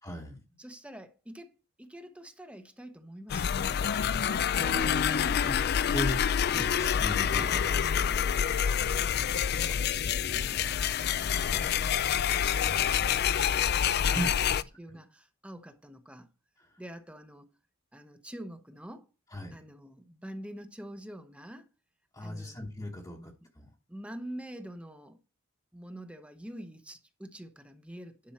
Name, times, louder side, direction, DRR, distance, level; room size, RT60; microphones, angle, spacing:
voice 1, 0.0-0.4 4.6-5.5 5.9-8.5 9.3-9.8 10.2-10.7 11.2-11.7 14.0-14.5 16.6-16.7 19.3-19.5 22.1-23.7, left 1 dB, 20° left, 1.2 m, -38 dB
voice 2, 0.6-3.9 9.5-10.1 11.3-14.4 14.8-16.3 16.8-17.5 17.9-19.1 19.5-21.7 22.2-22.6 23.2-23.5 23.9-25.2 25.7-28.3, right 1 dB, 5° right, 0.9 m, -46 dB
sound 1, 3.3-14.6, left 8 dB, 50° left, 0.4 m, -27 dB
10.5 x 5.3 x 4.3 m
head